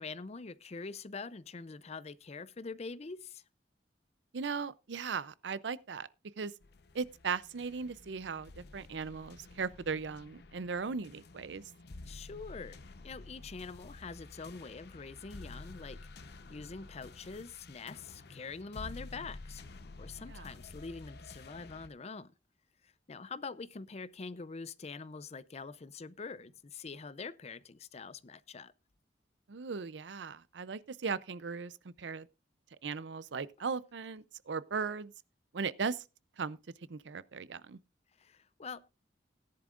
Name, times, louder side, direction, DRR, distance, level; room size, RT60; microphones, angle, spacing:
voice 1, 0.0-3.4 12.0-12.8 13.0-16.0 16.5-22.3 22.8-28.7 38.2-38.9, left 4 dB, 35° left, 0.5 m, -44 dB
voice 2, 4.3-6.1 6.4-6.5 6.9-11.6 20.3-20.4 29.5-32.3 32.8-35.1 35.5-36.0 36.4-36.6 36.9-37.8, right 5 dB, 80° right, 0.6 m, -38 dB
sound 1, 6.6-21.9, left 2 dB, 65° left, 0.8 m, -51 dB
17.0 x 10.5 x 2.5 m
head